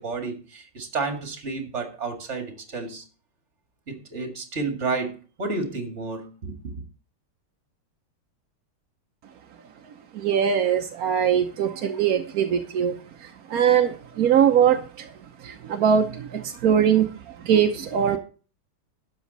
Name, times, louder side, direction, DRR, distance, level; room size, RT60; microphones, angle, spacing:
voice 1, 0.0-3.0 3.9-6.8, right 3 dB, 35° right, 2.2 m, -31 dB
voice 2, 10.1-15.1 15.4-18.2, right 8 dB, 60° right, 0.9 m, -22 dB
12.5 x 8.3 x 4.0 m
omnidirectional pair, 2.4 m